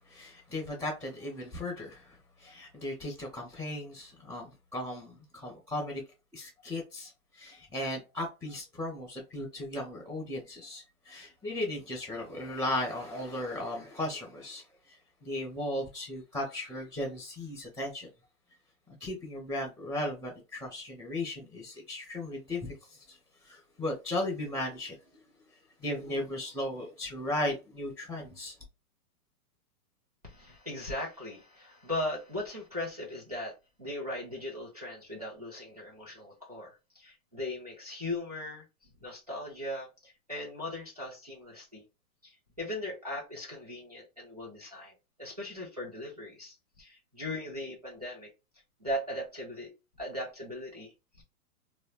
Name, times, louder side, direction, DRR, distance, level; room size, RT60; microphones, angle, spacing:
voice 1, 0.1-6.0 6.3-18.1 18.9-23.2 23.4-25.2 25.8-28.5, left 1 dB, 10° right, 0.8 m, -36 dB
voice 2, 30.2-38.6 39.0-41.8 42.2-48.3 48.8-49.7 50.0-51.2, left 1 dB, 30° right, 0.4 m, -39 dB
3.8 x 2.1 x 2.2 m
hypercardioid pair, 180°, 45 cm